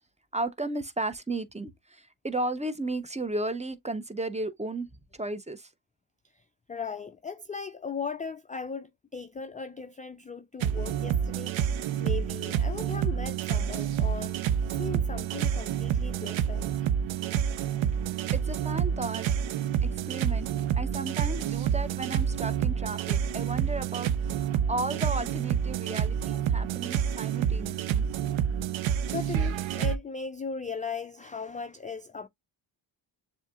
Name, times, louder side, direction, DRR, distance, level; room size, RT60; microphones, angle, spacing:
voice 1, 0.3-4.9 5.1-5.7 18.3-19.4 19.8-20.5 20.8-28.0, right 2 dB, 15° right, 0.7 m, -34 dB
voice 2, 6.7-11.5 12.0-14.4 14.8-16.9 26.3-26.4 29.1-32.3, left 5 dB, 15° left, 0.4 m, -38 dB
sound 1, 10.6-30.0, right 8 dB, 70° right, 0.7 m, -28 dB
7.0 x 2.8 x 2.4 m
supercardioid pair, 55°, 49 cm